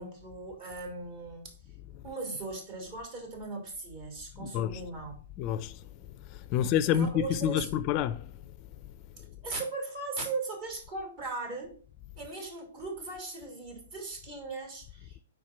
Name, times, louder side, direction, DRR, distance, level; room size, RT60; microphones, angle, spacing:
voice 1, 0.0-1.4 2.0-5.2 6.6-7.7 9.4-11.8 12.2-15.2, right 3 dB, 40° right, 2.9 m, -38 dB
voice 2, 4.4-4.8 5.4-5.8 6.3-8.3, left 10 dB, 35° left, 0.4 m, -28 dB
5.0 x 4.4 x 5.8 m
hypercardioid pair, 130°, 0 cm